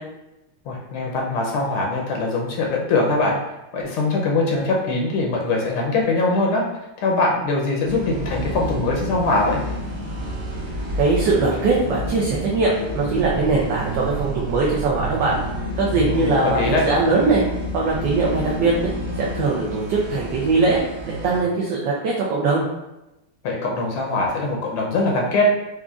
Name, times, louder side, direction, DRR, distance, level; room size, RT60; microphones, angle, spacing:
voice 1, 0.7-3.4 3.7-6.6 7.0-9.6 15.9-16.9 23.4-25.5, left 2 dB, 80° left, -1 dB, 1.4 m, -22 dB
sound 1, 7.8-21.4, equal, 45° right, 1.0 m, -29 dB
voice 2, 11.0-15.4 15.8-17.4 17.7-18.9 19.2-22.6, right 3 dB, 70° right, -4 dB, 1.2 m, -21 dB
4.9 x 2.5 x 2.3 m, 0.95 s
omnidirectional pair, 2.4 m